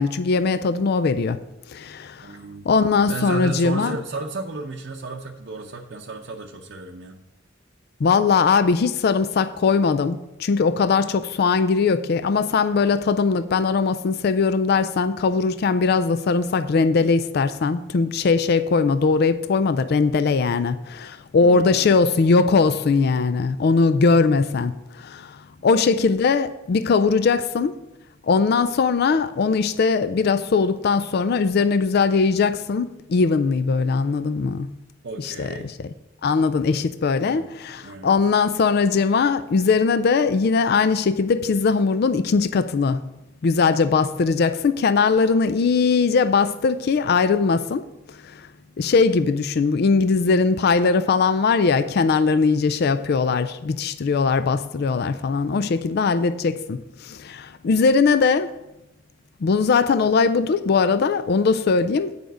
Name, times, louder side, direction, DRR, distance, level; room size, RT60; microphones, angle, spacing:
voice 1, 0.0-1.4 1.7-2.3 2.7-4.0 8.0-27.8 28.3-34.7 35.2-35.5 36.2-43.1 43.4-47.8 48.2-48.4 48.8-58.5 59.4-62.1, left 4 dB, 55° left, 0.4 m, -20 dB
voice 2, 2.2-7.2 21.4-21.9 35.0-35.7 37.2-37.6 37.8-38.1, right 3 dB, 60° right, 0.7 m, -33 dB
9.2 x 5.1 x 6.2 m
head